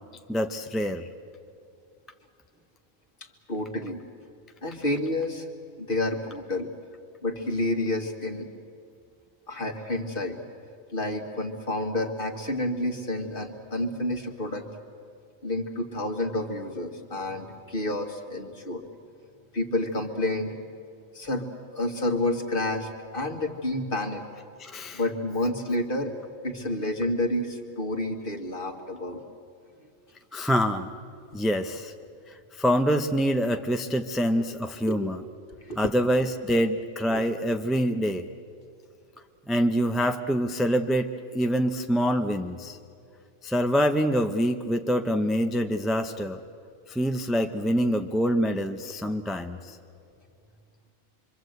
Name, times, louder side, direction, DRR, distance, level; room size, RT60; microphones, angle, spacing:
voice 1, 0.3-1.1 24.6-25.0 30.3-30.9 31.3-31.9 32.3-35.2 35.8-38.3 39.5-42.8 43.4-46.4 46.9-49.8, equal, ahead, 6 dB, 0.4 m, -25 dB
voice 2, 3.5-4.0 4.6-5.5 5.8-6.7 7.2-8.5 9.5-10.4 10.9-14.7 15.4-18.9 19.5-20.6 21.1-24.2 24.9-26.1 26.4-29.2 34.9-35.0 35.6-35.9 37.1-37.3, left 1 dB, 40° left, 4 dB, 1.9 m, -29 dB
26.0 x 24.0 x 8.0 m, 2.4 s
omnidirectional pair, 1.4 m